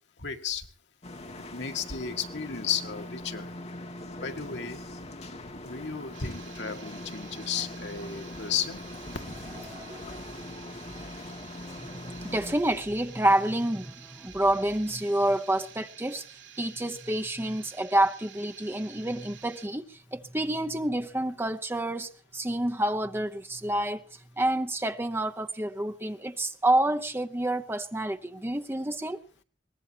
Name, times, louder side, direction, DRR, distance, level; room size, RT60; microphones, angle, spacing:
voice 1, 0.2-0.7 1.5-3.5 4.2-4.8 5.6-8.8, left 7 dB, 75° left, 2.0 m, -33 dB
sound 1, 1.0-12.6, left 1 dB, 35° left, 2.4 m, -41 dB
sound 2, 6.1-19.7, right 10 dB, 75° right, 3.7 m, -51 dB
sound 3, 7.1-16.4, equal, 5° left, 3.2 m, -55 dB
voice 2, 9.7-10.2 11.9-16.3 16.6-24.0 24.4-29.2, right 1 dB, 15° right, 0.9 m, -28 dB
22.5 x 19.0 x 3.0 m
head